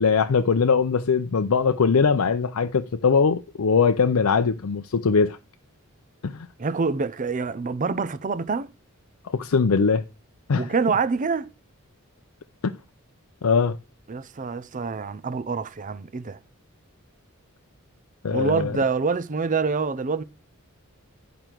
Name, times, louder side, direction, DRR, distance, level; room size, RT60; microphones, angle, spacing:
voice 1, 0.0-5.4 6.2-6.5 9.2-10.0 10.5-10.7 13.4-13.8 18.2-18.8, left 5 dB, 75° left, 0.5 m, -21 dB
voice 2, 6.6-8.7 10.6-11.5 14.1-16.4 18.3-20.2, right 4 dB, 35° right, 0.5 m, -26 dB
11.0 x 5.1 x 4.5 m
head